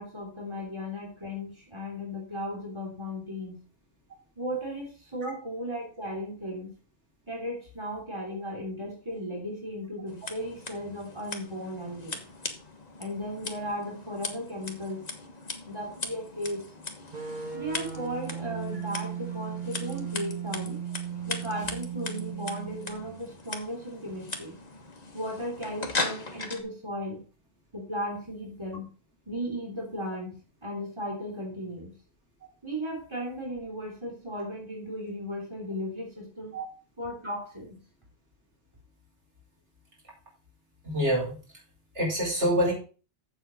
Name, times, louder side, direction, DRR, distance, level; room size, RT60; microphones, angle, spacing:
voice 1, 0.0-3.6 4.4-6.7 7.3-12.2 13.0-15.1 15.7-16.7 17.5-20.8 21.3-24.5 25.1-27.2 27.7-28.9 29.3-31.9 32.6-36.6 37.0-37.8, equal, 25° right, -1 dB, 3.3 m, -36 dB
Scissors, 10.1-26.6, left 3 dB, 35° left, 1.5 m, -39 dB
sound 1, 17.1-23.2, right 8 dB, 45° right, 1.5 m, -36 dB
voice 2, 40.8-41.4 41.9-42.7, equal, 80° right, -2 dB, 4.7 m, -26 dB
7.8 x 7.6 x 5.2 m, 0.35 s
omnidirectional pair, 1.2 m